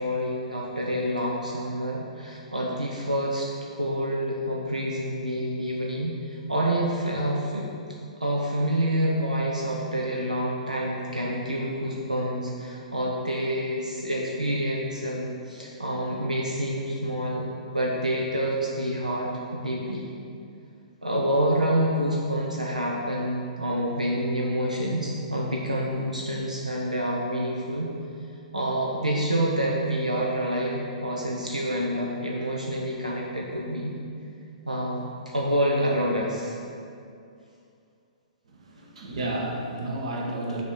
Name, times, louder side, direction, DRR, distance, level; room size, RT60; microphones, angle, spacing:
voice 1, 0.0-3.5 3.8-7.7 8.2-20.1 21.0-27.9 28.5-34.0 34.7-35.1 35.3-36.6, equal, 85° right, -3 dB, 0.9 m, -27 dB
voice 2, 38.5-40.6, right 1 dB, 60° right, -1 dB, 1.3 m, -32 dB
7.0 x 4.2 x 6.3 m, 2.4 s
figure-of-eight pair, 115°, 4 cm